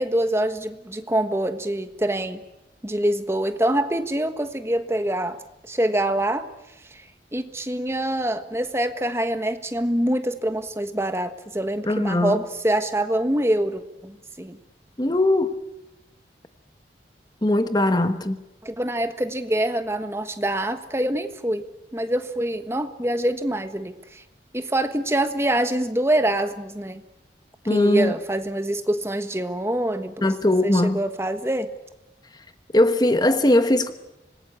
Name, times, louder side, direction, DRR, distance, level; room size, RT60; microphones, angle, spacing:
voice 1, 0.0-2.4 2.8-5.4 5.6-6.5 6.9-7.0 7.3-14.6 18.6-21.6 21.9-24.2 24.5-27.0 27.6-30.3 30.6-31.7, right 1 dB, 15° right, 9 dB, 1.3 m, -25 dB
voice 2, 11.8-12.4 15.0-15.5 17.4-18.4 27.7-28.1 30.2-31.0 32.7-33.9, left 1 dB, 25° left, 10 dB, 1.1 m, -20 dB
26.0 x 20.0 x 8.6 m, 0.96 s
head